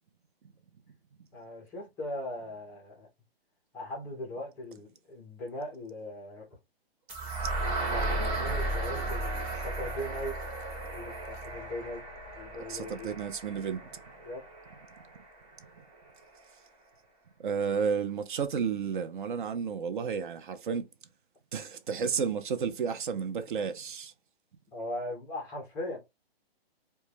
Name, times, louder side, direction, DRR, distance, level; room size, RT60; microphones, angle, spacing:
voice 1, 1.3-3.1 3.7-6.5 7.9-10.4 10.8-12.0 12.3-13.1 14.2-14.4 24.7-26.0, left 1 dB, 10° left, 0.4 m, -39 dB
sound 1, 7.1-15.0, right 2 dB, 25° right, 1.0 m, -34 dB
voice 2, 12.7-13.9 17.4-20.9 21.5-24.1, right 6 dB, 55° right, 0.4 m, -32 dB
2.1 x 2.1 x 3.1 m
hypercardioid pair, 140°, 31 cm